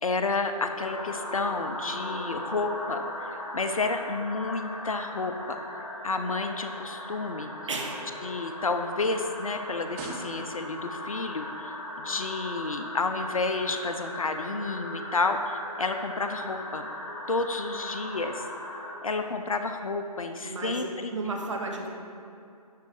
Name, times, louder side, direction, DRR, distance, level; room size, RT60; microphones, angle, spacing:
voice 1, 0.0-5.6 6.0-7.5 8.2-16.9 17.3-18.4 19.0-21.1, left 3 dB, 60° left, 7 dB, 0.7 m, -30 dB
sound 1, 0.8-18.9, left 1 dB, 30° left, 2.0 m, -38 dB
voice 2, 7.7-8.0 20.4-21.9, right 3 dB, 50° right, 1 dB, 1.4 m, -33 dB
sound 2, 8.3-10.9 11.8-11.9, right 3 dB, 10° right, 0.7 m, -44 dB
11.0 x 3.9 x 6.3 m, 2.5 s
figure-of-eight pair, 150°, 20 cm